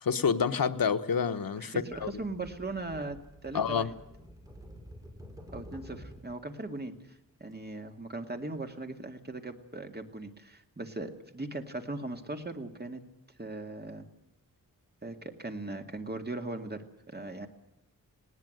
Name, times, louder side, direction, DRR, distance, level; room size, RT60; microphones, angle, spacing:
voice 1, 0.0-1.7 2.0-2.1 3.5-3.9, left 6 dB, 80° left, 1.1 m, -28 dB
voice 2, 1.6-3.9 5.5-13.0 13.4-14.1 15.0-17.5, right 2 dB, 30° right, 2.2 m, -39 dB
sound 1, 1.9-6.3 7.4-7.6, equal, 10° right, 5.7 m, -49 dB
19.5 x 18.0 x 7.9 m
wide cardioid pair, 105°, 34 cm